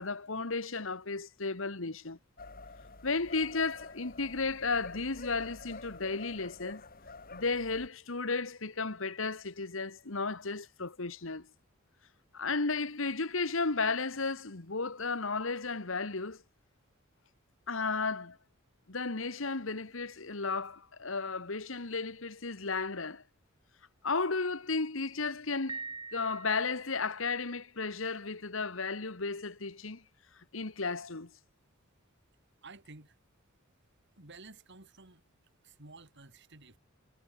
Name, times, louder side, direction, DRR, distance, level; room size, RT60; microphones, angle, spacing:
voice 1, 0.0-2.2 3.0-6.8 7.3-11.5 12.3-16.4 17.7-18.4 18.9-23.2 24.0-25.8 26.1-30.0 30.5-31.3, left 4 dB, 70° left, 1.7 m, -34 dB
sound 1, 2.4-7.9, left 3 dB, 45° left, 6.0 m, -48 dB
Piano, 25.7-27.1, right 4 dB, 20° right, 1.9 m, -43 dB
voice 2, 32.6-33.2 34.2-35.2 35.6-36.8, right 3 dB, 60° right, 3.2 m, -52 dB
head